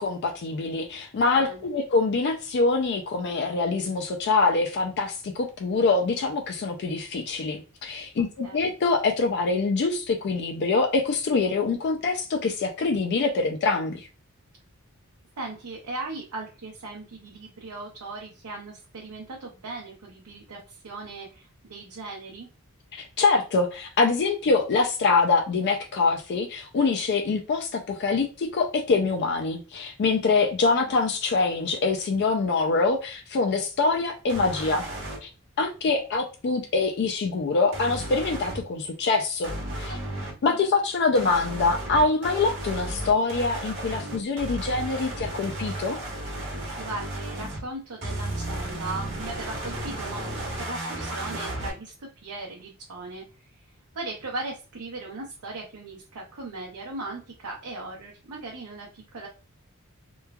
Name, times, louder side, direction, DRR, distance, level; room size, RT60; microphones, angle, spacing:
voice 1, 0.0-14.1 22.9-34.8 35.2-35.3 35.6-40.0 40.4-46.0, left 3 dB, 50° left, 3 dB, 0.3 m, -24 dB
voice 2, 1.3-1.7 8.4-8.7 15.4-22.5 30.6-30.9 39.9-40.6 46.8-59.3, right 2 dB, 85° right, -1 dB, 0.6 m, -38 dB
sound 1, 34.3-35.2 37.7-38.6 39.4-40.3 41.1-47.6 48.0-51.7, right 1 dB, 55° right, 1.1 m, -34 dB
3.0 x 2.2 x 2.2 m, 0.33 s
head